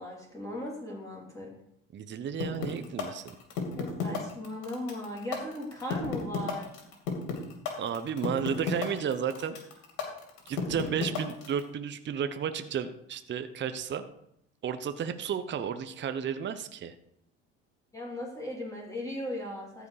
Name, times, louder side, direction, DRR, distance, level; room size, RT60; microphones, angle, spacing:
voice 1, 0.0-1.5 3.8-6.7 17.9-19.9, left 1 dB, 10° left, -3 dB, 3.0 m, -37 dB
voice 2, 1.9-3.4 7.8-9.6 10.5-14.0 14.6-16.9, right 7 dB, 35° right, 10 dB, 0.8 m, -33 dB
sound 1, 2.4-11.6, left 7 dB, 65° left, 2.8 m, -33 dB
14.0 x 5.0 x 4.9 m, 0.75 s
hypercardioid pair, 70°, 33 cm